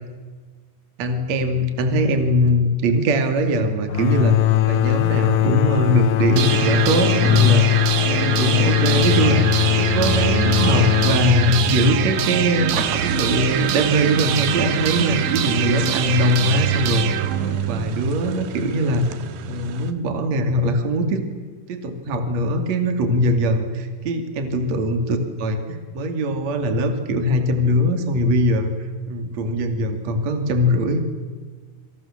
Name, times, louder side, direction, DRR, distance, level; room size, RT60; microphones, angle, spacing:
voice 1, 1.0-4.3 4.7-9.4 9.8-12.7 13.0-17.2 17.7-19.0 19.4-21.2 21.7-28.7 29.1-31.0, equal, 45° right, 6 dB, 3.4 m, -21 dB
sound 1, 3.9-13.4, left 12 dB, 85° left, 1.5 m, -21 dB
sound 2, 6.4-18.3, right 9 dB, 90° right, 3.7 m, -23 dB
sound 3, 12.7-19.9, right 7 dB, 75° right, 3.5 m, -33 dB
29.0 x 26.0 x 7.4 m, 1.5 s
omnidirectional pair, 4.8 m